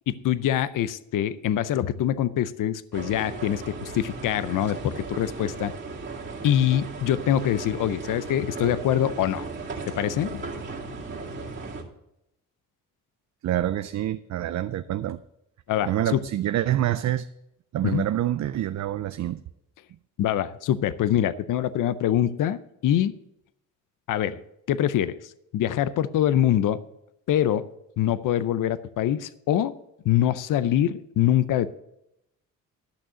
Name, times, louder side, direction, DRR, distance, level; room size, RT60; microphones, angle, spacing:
voice 1, 0.1-5.7 6.4-9.5 10.0-10.4 15.7-16.2 17.8-18.0 20.2-23.2 24.1-24.4 24.7-26.8 27.3-27.7 28.0-29.8 30.0-31.7, left 11 dB, 70° left, 0.6 m, -24 dB
sound 1, 2.9-11.8, right 3 dB, 35° right, 2.2 m, -36 dB
voice 2, 13.4-15.2 15.8-17.3 17.7-19.4, right 12 dB, 55° right, 0.5 m, -26 dB
11.5 x 6.3 x 6.7 m
cardioid pair, 110°, 33 cm